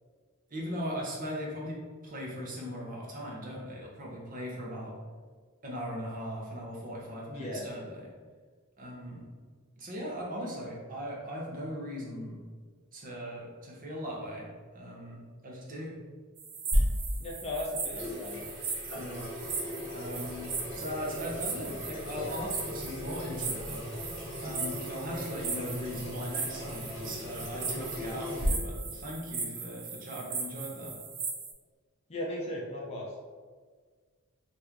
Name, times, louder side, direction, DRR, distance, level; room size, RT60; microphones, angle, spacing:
voice 1, 0.5-1.8 2.0-4.9 5.6-8.1 8.8-9.3 9.8-12.4 12.9-14.5 14.7-15.9 18.9-19.2 19.9-20.5 20.7-23.8 24.4-30.9, equal, 40° right, -3 dB, 0.7 m, -39 dB
voice 2, 7.3-7.6 17.2-18.5 32.1-33.3, left 1 dB, 30° left, -3 dB, 0.5 m, -37 dB
sound 1, 16.4-31.5, right 5 dB, 75° right, 0.6 m, -39 dB
Water tap faucet / Sink (filling or washing), 16.7-28.5, equal, 50° left, 1.1 m, -36 dB
2.9 x 2.5 x 3.5 m, 1.5 s
head